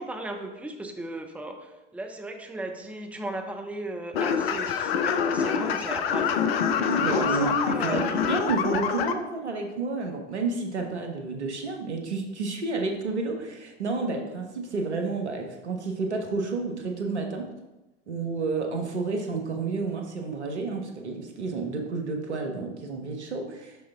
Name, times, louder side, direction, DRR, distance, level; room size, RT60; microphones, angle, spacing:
voice 1, 0.0-8.4, right 1 dB, 5° right, 4 dB, 0.7 m, -36 dB
sound 1, 4.1-9.1, left 7 dB, 60° left, 0.7 m, -26 dB
voice 2, 7.0-17.5 18.1-23.8, right 3 dB, 75° right, 3 dB, 1.2 m, -30 dB
6.8 x 6.2 x 3.5 m, 1.0 s
figure-of-eight pair, 75°, 34 cm